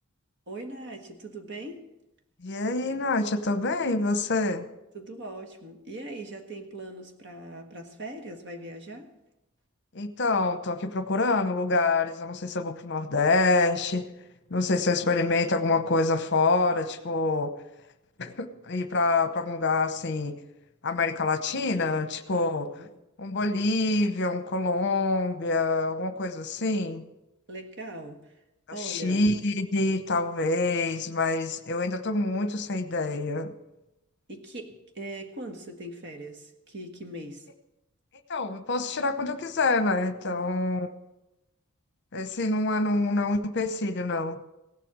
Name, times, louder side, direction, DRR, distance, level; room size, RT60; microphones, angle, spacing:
voice 1, 0.5-1.8 4.9-9.1 22.3-22.9 27.5-28.3 28.7-29.2 34.3-37.5 40.2-40.5, right 1 dB, 55° right, 5 dB, 1.6 m, -40 dB
voice 2, 2.4-4.7 9.9-14.1 14.5-17.5 18.2-20.4 20.8-22.7 23.2-27.0 28.8-33.5 38.3-40.9 42.1-44.4, left 3 dB, 50° left, 11 dB, 0.8 m, -26 dB
16.5 x 7.5 x 7.5 m, 0.94 s
head